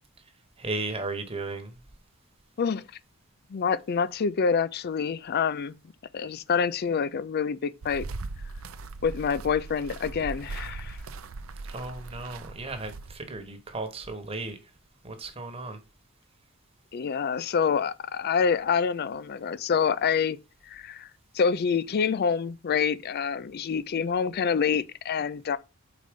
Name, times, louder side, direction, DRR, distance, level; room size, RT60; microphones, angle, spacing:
voice 1, 0.6-1.8 11.7-14.7 15.0-15.8, right 3 dB, 30° right, 1.2 m, -35 dB
voice 2, 3.5-5.8 6.1-8.1 9.0-11.0 16.9-20.4 20.7-21.1 21.3-25.6, left 6 dB, 50° left, 0.4 m, -27 dB
sound 1, 7.8-13.4, right 3 dB, 70° right, 0.6 m, -39 dB
5.0 x 4.0 x 5.1 m
head